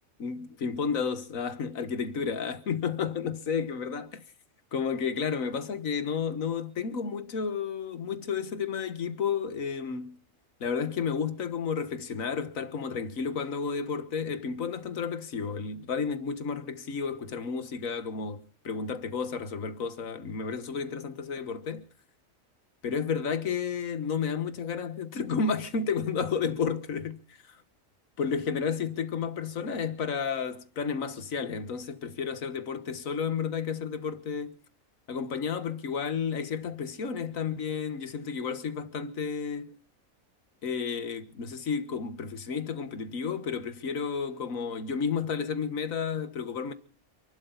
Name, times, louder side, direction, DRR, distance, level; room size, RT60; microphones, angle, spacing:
voice 1, 0.2-4.2 4.7-10.2 10.6-21.9 22.8-27.6 28.2-34.6 35.1-39.8 40.6-46.7, left 6 dB, 80° left, 1.8 m, -32 dB
28.5 x 12.0 x 4.0 m
omnidirectional pair, 1.4 m